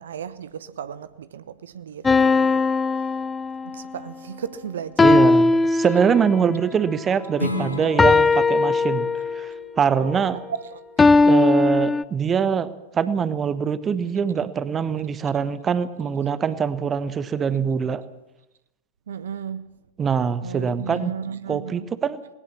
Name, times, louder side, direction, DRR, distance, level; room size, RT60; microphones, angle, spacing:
voice 1, 0.0-2.6 3.6-5.2 10.0-10.8 19.1-19.7 20.4-21.9, right 8 dB, 65° right, 15 dB, 0.8 m, -35 dB
sound 1, 2.0-3.8 5.0-6.4 8.0-9.5 11.0-12.0, left 3 dB, 15° left, 0.6 m, -18 dB
voice 2, 5.0-9.1 9.3-10.4 11.3-18.0 20.0-21.1 21.5-22.2, right 6 dB, 20° right, 15 dB, 1.1 m, -23 dB
Strum, 7.4-12.6, left 2 dB, 85° left, 2.2 m, -35 dB
19.5 x 19.0 x 7.3 m, 0.93 s
figure-of-eight pair, 90°, 0 cm